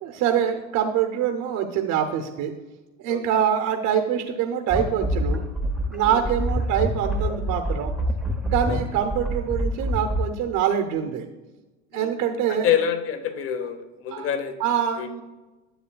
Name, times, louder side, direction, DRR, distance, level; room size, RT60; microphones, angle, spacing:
voice 1, 0.0-2.5 3.0-5.4 5.9-7.9 8.5-11.3 11.9-12.7 14.1-14.3 14.6-15.2, right 9 dB, 50° right, 4 dB, 0.7 m, -24 dB
sound 1, 4.7-10.3, equal, ahead, 0.5 m, -26 dB
voice 2, 12.5-14.6 15.0-15.2, left 9 dB, 35° left, 9 dB, 0.7 m, -27 dB
10.0 x 7.1 x 2.2 m, 1.1 s
supercardioid pair, 105°, 39 cm